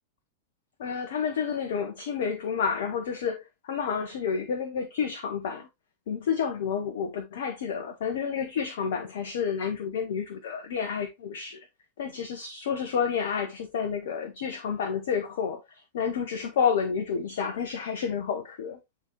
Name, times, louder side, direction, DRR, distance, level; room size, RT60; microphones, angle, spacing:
voice 1, 0.8-5.7 6.1-11.6 12.0-18.8, left 6 dB, 60° left, 0.9 m, -30 dB
9.1 x 4.0 x 3.0 m
figure-of-eight pair, 90°, 0 cm